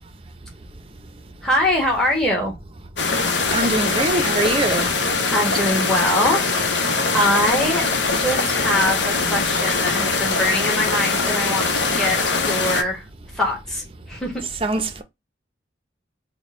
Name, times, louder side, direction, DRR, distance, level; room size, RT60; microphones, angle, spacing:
voice 1, 1.4-2.5 5.3-7.9 8.2-13.0 13.3-14.3, left 1 dB, 5° left, 1.3 m, -23 dB
sound 1, 3.0-12.8, left 4 dB, 75° left, 0.8 m, -22 dB
voice 2, 3.5-4.9 14.6-15.0, right 2 dB, 30° right, 0.6 m, -22 dB
4.1 x 2.2 x 3.6 m
head